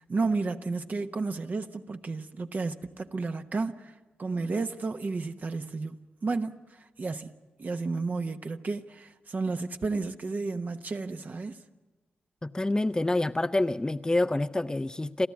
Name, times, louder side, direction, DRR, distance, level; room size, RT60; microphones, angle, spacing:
voice 1, 0.0-3.9 4.2-7.3 7.6-11.6, right 3 dB, 50° right, 1.1 m, -32 dB
voice 2, 12.4-15.3, left 2 dB, 20° left, 0.6 m, -27 dB
30.0 x 13.5 x 8.6 m
supercardioid pair, 45°, 4 cm